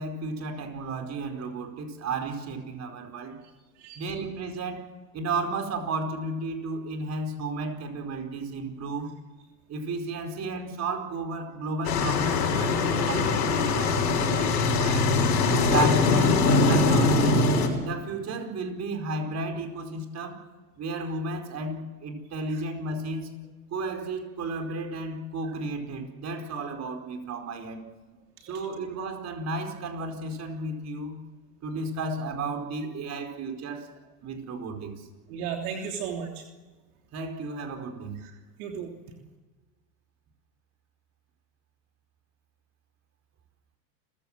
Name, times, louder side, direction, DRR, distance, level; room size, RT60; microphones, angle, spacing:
voice 1, 0.0-3.4 3.9-4.9 5.1-9.1 9.7-15.2 15.7-17.5 17.8-20.4 20.8-23.3 23.7-27.9 28.5-31.2 31.6-33.9 34.2-35.1 37.1-38.2, right 3 dB, 30° right, 5 dB, 4.8 m, -33 dB
sound 1, 11.8-17.7, left 3 dB, 80° left, 6.1 m, -22 dB
voice 2, 35.3-36.4 38.2-38.3 38.6-38.9, right 7 dB, 60° right, 2 dB, 3.3 m, -35 dB
29.5 x 15.5 x 7.5 m, 1.3 s
hypercardioid pair, 110°, 49 cm